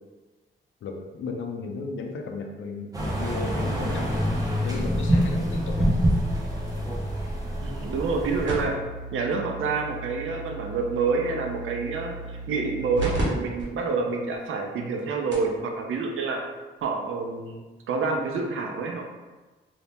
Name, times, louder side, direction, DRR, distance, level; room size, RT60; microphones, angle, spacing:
voice 1, 0.8-4.4 4.6-5.9, left 3 dB, 75° left, 2 dB, 0.5 m, -34 dB
sound 1, 2.9-8.7, equal, 20° right, 0.7 m, -26 dB
voice 2, 7.6-8.8 9.1-16.4 16.8-19.0, right 4 dB, 85° right, 2 dB, 0.5 m, -28 dB
sound 2, 8.5-13.2 13.6-13.7 14.3-14.4 15.0-15.1 15.3-15.6 16.8-16.9, right 2 dB, 65° right, 1.2 m, -35 dB
2.7 x 2.7 x 3.4 m, 1.2 s
wide cardioid pair, 120°, 20 cm